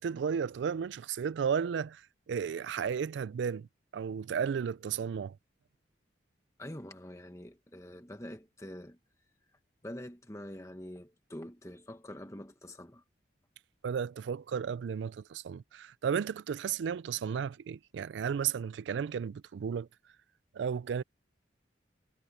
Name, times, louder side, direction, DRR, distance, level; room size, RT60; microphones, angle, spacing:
voice 1, 0.0-3.7 3.9-5.4 13.8-19.9 20.5-21.0, right 7 dB, 75° right, 0.3 m, -34 dB
voice 2, 6.6-9.0 9.8-13.0, left 1 dB, 15° left, 1.3 m, -45 dB
head